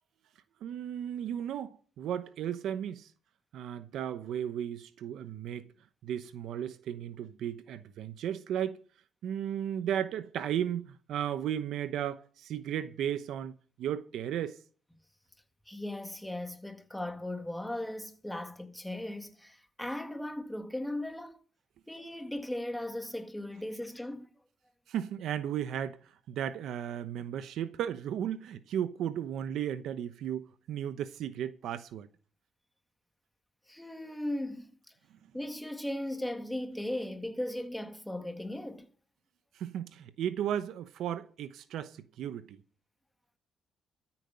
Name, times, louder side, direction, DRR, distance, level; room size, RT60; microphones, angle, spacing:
voice 1, 0.6-3.1 3.5-5.7 6.0-8.8 9.2-14.6 24.9-32.1 39.5-42.6, right 10 dB, 80° right, 0.9 m, -35 dB
voice 2, 15.7-21.4 21.9-24.3 33.7-34.7 35.3-38.9, left 1 dB, 5° left, 1.9 m, -37 dB
13.0 x 9.0 x 5.7 m
cardioid pair, 90°, 0 cm